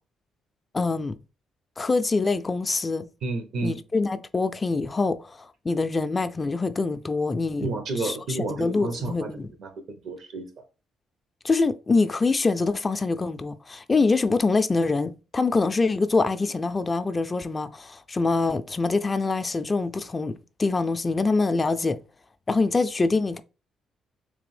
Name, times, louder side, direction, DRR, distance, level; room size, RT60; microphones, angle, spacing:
voice 1, 0.7-1.2 1.8-3.1 3.6-7.7 8.0-9.5 11.4-22.0 22.5-23.4, left 3 dB, 25° left, 0.3 m, -25 dB
voice 2, 3.2-3.8 7.6-10.5, right 2 dB, 70° right, 0.9 m, -31 dB
3.4 x 3.3 x 3.2 m
cardioid pair, 90°, 0 cm